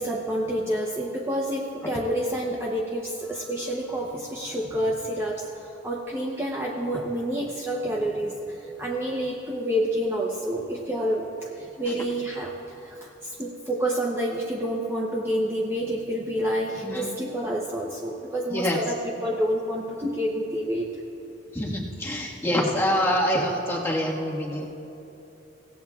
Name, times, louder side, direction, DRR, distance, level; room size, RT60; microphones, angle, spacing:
voice 1, 0.0-21.0, equal, 15° right, -2 dB, 0.7 m, -28 dB
voice 2, 21.5-24.7, equal, 15° left, -4 dB, 1.5 m, -25 dB
24.0 x 17.0 x 2.4 m, 2.9 s
head